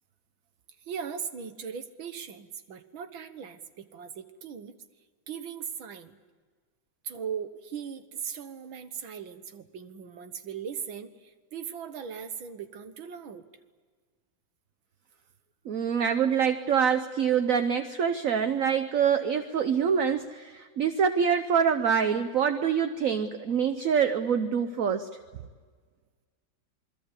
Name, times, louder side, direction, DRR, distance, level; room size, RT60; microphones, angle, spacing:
voice 1, 0.9-4.8 5.3-6.2 7.0-13.5, right 7 dB, 85° right, 9 dB, 2.1 m, -39 dB
voice 2, 15.6-25.1, right 7 dB, 55° right, 8 dB, 1.1 m, -25 dB
28.0 x 21.0 x 8.2 m, 1.5 s
omnidirectional pair, 2.1 m